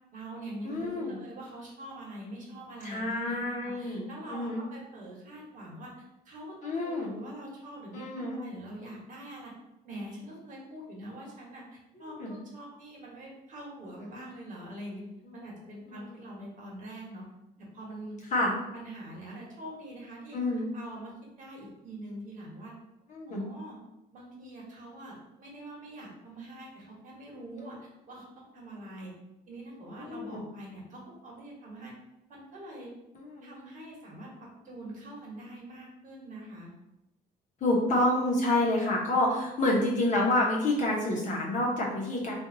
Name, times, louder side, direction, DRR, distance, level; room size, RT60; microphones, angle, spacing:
voice 1, 0.1-9.5 9.8-15.1 15.3-17.2 17.6-18.2 18.6-21.1 21.4-22.7 23.3-23.8 24.1-29.1 29.5-31.9 32.3-32.9 33.4-36.7, right 1 dB, 50° right, -3 dB, 1.2 m, -44 dB
voice 2, 0.6-1.2 2.8-4.6 6.6-7.1 7.9-8.4 12.0-12.3 15.4-15.5 15.9-16.0 18.3-18.5 20.3-20.7 23.1-23.4 27.6-27.7 30.0-30.4 33.1-33.5 37.6-42.3, left 1 dB, 50° left, -3 dB, 1.0 m, -28 dB
2.7 x 2.6 x 3.9 m, 0.89 s
cardioid pair, 110°, 17 cm